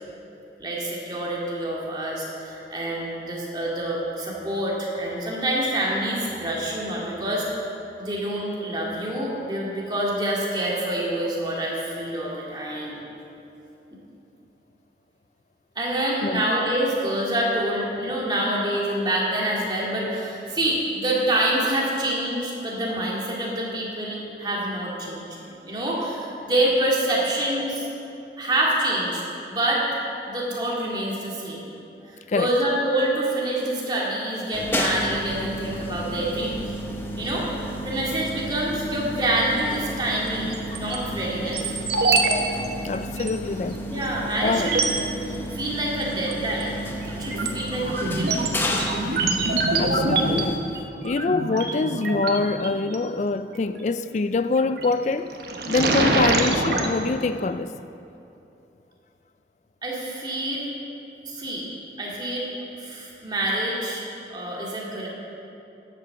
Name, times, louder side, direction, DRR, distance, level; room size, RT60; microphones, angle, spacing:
voice 1, 0.6-7.5 8.0-13.0 15.8-27.9 28.4-31.6 32.1-36.8 37.2-37.5 37.8-41.7 43.9-44.9 45.3-46.8 47.0-48.5 59.8-60.7 61.3-61.6 62.0-62.5 62.8-65.1, right 1 dB, 25° right, 2.2 m, -26 dB
sound 1, 34.5-50.6, equal, 10° left, 0.8 m, -32 dB
sound 2, 40.5-41.0 41.5-42.3 42.6-42.7 43.2-43.3 44.0-44.1 44.5-45.0 46.2-46.6 47.0-53.0 54.6-54.9 55.3-56.9, right 2 dB, 65° right, 1.1 m, -25 dB
voice 2, 42.8-43.9 44.4-44.7 49.8-50.6 51.0-55.4 55.7-57.7, left 3 dB, 40° left, 0.3 m, -25 dB
11.5 x 8.4 x 6.9 m
head